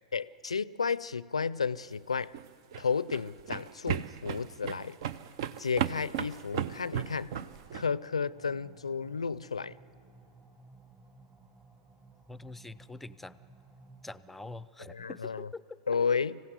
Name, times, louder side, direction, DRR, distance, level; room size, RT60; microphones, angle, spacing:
voice 1, 0.1-2.3 2.8-5.0 5.6-7.3 7.7-9.7 14.9-15.5 15.9-16.4, left 5 dB, 85° left, 0.4 m, -32 dB
sound 1, 2.2-7.9, right 9 dB, 60° right, 0.6 m, -35 dB
sound 2, 6.5-14.0, right 3 dB, 25° right, 3.2 m, -57 dB
voice 2, 12.3-13.4 14.0-15.8, left 2 dB, 5° left, 0.5 m, -45 dB
25.5 x 16.0 x 8.0 m
hypercardioid pair, 100°, 3 cm